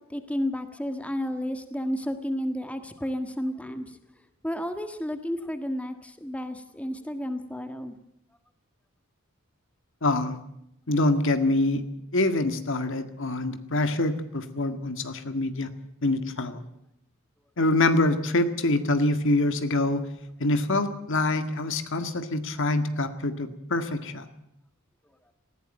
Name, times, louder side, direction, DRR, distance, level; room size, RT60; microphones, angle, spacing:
voice 1, 0.1-3.9 4.4-7.9, equal, 5° left, 8 dB, 1.6 m, -31 dB
voice 2, 10.0-10.4 10.9-11.8 12.1-15.7 16.0-16.6 17.6-20.0 20.4-24.3, left 2 dB, 65° left, 9 dB, 1.8 m, -25 dB
19.5 x 16.0 x 9.0 m, 0.78 s
head